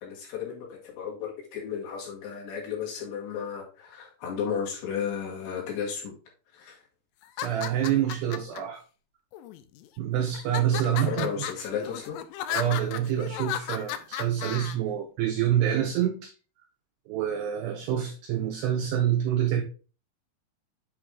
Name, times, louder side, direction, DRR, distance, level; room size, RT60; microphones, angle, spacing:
voice 1, 0.0-6.1 6.5-6.8 10.7-12.2, left 7 dB, 65° left, 3.6 m, -34 dB
sound 1, 7.2-8.6 9.3-9.9 10.3-14.8, left 11 dB, 85° left, 2.7 m, -35 dB
voice 2, 7.4-8.8 10.0-11.4 12.5-16.3 17.1-19.6, right 10 dB, 85° right, 2.4 m, -27 dB
8.0 x 4.8 x 3.6 m
omnidirectional pair, 5.8 m